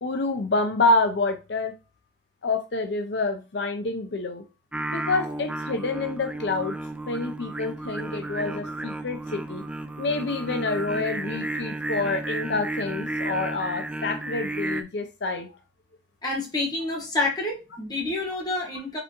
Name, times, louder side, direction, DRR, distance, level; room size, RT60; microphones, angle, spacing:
voice 1, 0.0-1.7 2.4-4.4 4.9-6.7 7.1-9.6 10.0-15.5, left 3 dB, 70° left, 0.5 m, -27 dB
Singing, 4.7-14.8, right 2 dB, 5° right, 0.3 m, -33 dB
voice 2, 16.2-19.0, left 2 dB, 20° left, 1.4 m, -28 dB
4.9 x 3.5 x 2.9 m
head